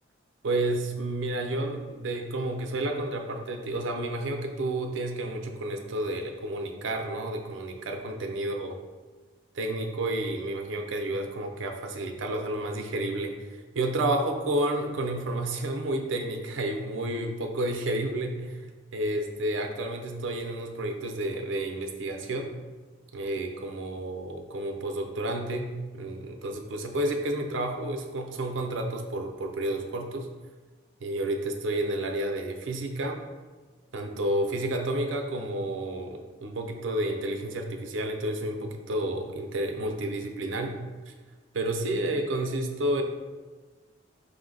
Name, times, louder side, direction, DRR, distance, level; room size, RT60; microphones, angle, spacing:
voice 1, 0.4-8.7 9.5-18.6 18.9-22.5 23.1-30.3 31.0-33.2 33.9-40.8 41.1-41.2 41.5-43.0, right 1 dB, 80° right, 3 dB, 0.5 m, -30 dB
5.2 x 2.1 x 3.8 m, 1.3 s
head